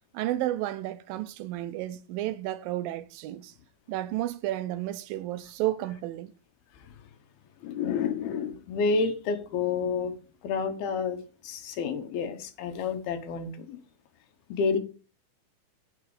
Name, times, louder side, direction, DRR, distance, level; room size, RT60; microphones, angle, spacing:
voice 1, 0.1-3.5 3.9-6.3, right 14 dB, 80° right, 2.2 m, -32 dB
voice 2, 7.6-10.1 10.4-13.8 14.5-14.8, left 5 dB, 90° left, 3.2 m, -29 dB
8.9 x 7.5 x 4.9 m
omnidirectional pair, 4.3 m